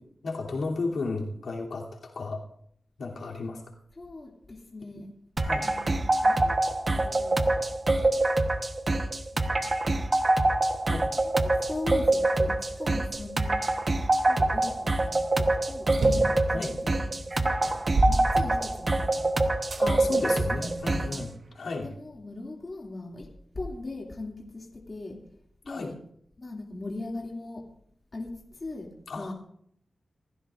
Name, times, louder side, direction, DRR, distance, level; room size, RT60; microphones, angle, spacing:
voice 1, 0.2-2.4 3.0-3.6 5.4-5.7 10.9-11.0 16.5-16.7 19.8-21.3 21.5-21.9 25.7-25.9 29.1-29.3, left 3 dB, 75° left, -2 dB, 3.0 m, -33 dB
voice 2, 3.9-5.1 5.5-6.6 6.9-7.4 8.1-8.5 9.3-9.7 11.2-13.6 14.3-17.6 18.1-19.3 20.0-21.2 21.8-25.2 25.6-25.9 26.4-27.6 28.1-28.9 29.1-29.3, left 2 dB, 30° left, -2 dB, 2.5 m, -40 dB
sound 1, 5.4-21.2, right 2 dB, 30° right, 1.1 m, -25 dB
sound 2, 15.8-16.4 17.1-17.2 17.6-19.0 19.7-19.8 20.6-21.6, right 2 dB, 70° right, 2.7 m, -29 dB
29.0 x 15.0 x 2.5 m, 0.68 s
wide cardioid pair, 170°, 0 cm